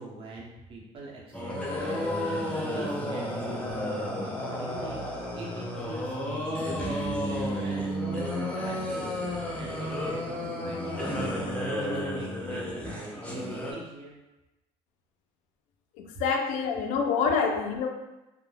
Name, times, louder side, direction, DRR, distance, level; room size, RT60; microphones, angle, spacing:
voice 1, 0.0-14.2, right 2 dB, 45° right, -3 dB, 0.7 m, -44 dB
sound 1, 1.3-13.7, equal, 10° left, 0.5 m, -32 dB
voice 2, 16.0-17.9, left 5 dB, 80° left, 4 dB, 0.4 m, -27 dB
2.2 x 2.1 x 3.2 m, 1.0 s
cardioid pair, 125°, 13 cm